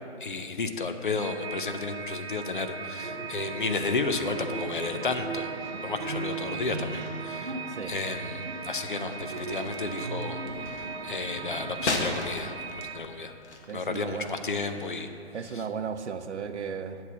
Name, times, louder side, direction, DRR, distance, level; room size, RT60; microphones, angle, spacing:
voice 1, 0.2-5.5 5.8-10.4 10.6-13.3 13.7-15.1 15.5-15.6, left 3 dB, 50° left, 7 dB, 0.5 m, -32 dB
sound 1, 1.2-13.0, right 5 dB, 65° right, 1.1 m, -39 dB
sound 2, 3.0-12.2, right 3 dB, 45° right, 0.7 m, -38 dB
sound 3, 9.2-15.0, left 2 dB, 75° left, 1.3 m, -37 dB
voice 2, 13.7-14.3 15.3-17.0, right 6 dB, 80° right, 9 dB, 0.7 m, -35 dB
8.5 x 4.6 x 7.0 m, 2.5 s
hypercardioid pair, 175°, 34 cm